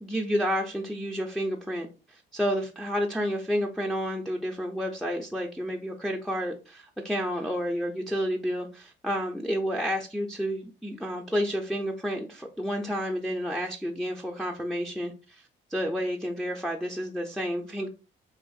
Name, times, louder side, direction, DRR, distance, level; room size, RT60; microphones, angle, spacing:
voice 1, 0.0-15.4 15.7-17.9, equal, ahead, 1 dB, 0.4 m, -30 dB
3.4 x 2.4 x 2.3 m, 0.31 s
cardioid pair, 90°, 20 cm